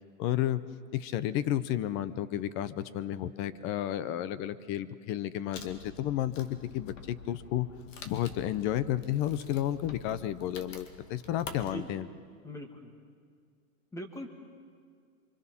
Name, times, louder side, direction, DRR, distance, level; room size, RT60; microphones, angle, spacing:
voice 1, 0.2-0.6 0.9-7.7 8.0-12.1, left 12 dB, 30° left, 15 dB, 0.7 m, -32 dB
Wood, 5.5-11.7, left 5 dB, 65° left, 2.3 m, -47 dB
voice 2, 12.4-12.9 13.9-14.3, equal, 5° left, 4 dB, 2.0 m, -41 dB
25.0 x 24.5 x 6.0 m, 2.1 s
hypercardioid pair, 145°, 40 cm